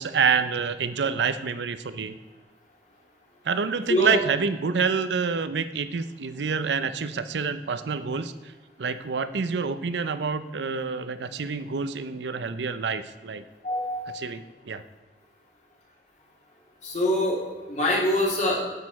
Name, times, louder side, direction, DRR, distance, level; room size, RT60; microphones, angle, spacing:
voice 1, 0.0-2.2 3.4-8.3 8.8-13.4 14.1-14.8, right 5 dB, 70° right, 12 dB, 0.6 m, -27 dB
voice 2, 13.6-14.0 16.8-17.4 17.7-18.6, left 1 dB, 45° left, -3 dB, 2.8 m, -24 dB
9.1 x 8.3 x 4.2 m, 1.2 s
head